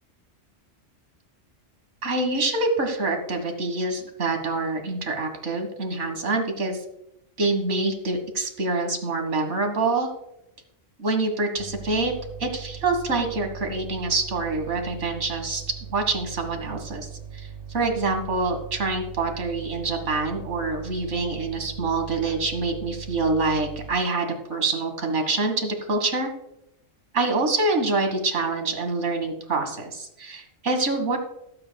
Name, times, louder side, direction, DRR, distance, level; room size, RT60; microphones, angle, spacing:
voice 1, 2.0-6.8 7.4-10.1 11.0-12.1 12.4-26.3 27.1-31.2, right 3 dB, 75° right, 5 dB, 2.0 m, -26 dB
sound 1, 11.6-23.9, right 7 dB, 50° right, 1.6 m, -40 dB
18.0 x 8.8 x 2.3 m, 0.83 s
omnidirectional pair, 1.2 m